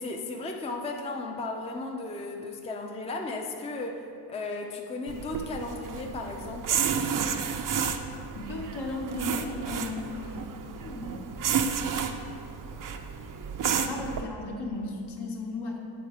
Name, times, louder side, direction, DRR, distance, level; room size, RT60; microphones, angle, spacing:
voice 1, 0.0-6.9, left 2 dB, 15° left, 2 dB, 0.4 m, -35 dB
sound 1, 5.1-14.2, right 7 dB, 50° right, 0.5 m, -31 dB
voice 2, 8.3-10.5 10.7-11.3 13.7-15.8, left 2 dB, 65° left, 0 dB, 1.1 m, -35 dB
7.9 x 4.1 x 4.9 m, 2.5 s
cardioid pair, 105°, 44 cm